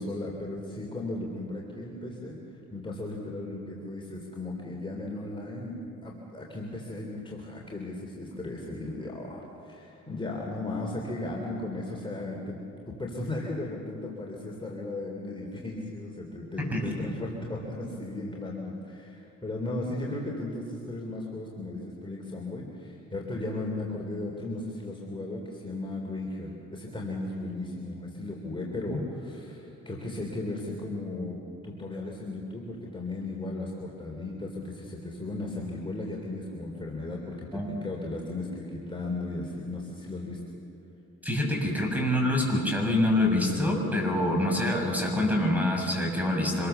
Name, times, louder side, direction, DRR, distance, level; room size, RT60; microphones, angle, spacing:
voice 1, 0.0-2.4 2.7-12.6 12.9-40.4, left 2 dB, 15° left, -2 dB, 3.6 m, -36 dB
voice 2, 41.2-46.7, left 1 dB, 5° right, 0 dB, 6.8 m, -26 dB
26.0 x 21.5 x 7.0 m, 2.7 s
cardioid pair, 90°, 30 cm